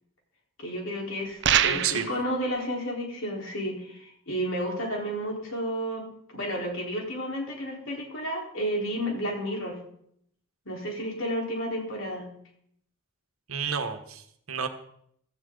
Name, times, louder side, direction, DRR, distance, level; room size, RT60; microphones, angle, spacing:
voice 1, 0.6-6.0 6.3-9.8 10.7-12.3, equal, 70° left, -1 dB, 4.3 m, -31 dB
sound 1, 1.4-2.2, right 9 dB, 55° right, 0.6 m, -23 dB
voice 2, 1.6-2.1 13.5-14.7, right 6 dB, 80° right, 8 dB, 1.4 m, -31 dB
16.0 x 14.0 x 4.0 m, 0.69 s
head